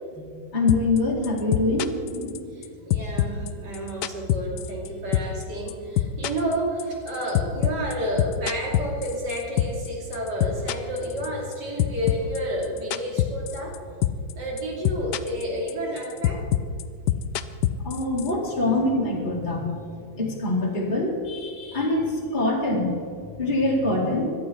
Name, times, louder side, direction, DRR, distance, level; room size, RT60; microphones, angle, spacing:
voice 1, 0.5-2.4 17.8-19.7 20.2-22.0 22.3-22.9 23.4-24.3, left 2 dB, 25° left, -3 dB, 2.5 m, -24 dB
sound 1, 0.7-1.0 1.2-2.6 2.9-4.9 5.1-5.4 5.7-9.9 10.1-11.5 11.8-13.8 14.0-14.3 14.6-15.4 15.7-18.3, left 12 dB, 70° left, 1.1 m, -24 dB
voice 2, 2.5-13.7 14.4-16.4, equal, 55° right, -1 dB, 3.4 m, -30 dB
17.0 x 12.0 x 4.6 m, 2.4 s
omnidirectional pair, 2.2 m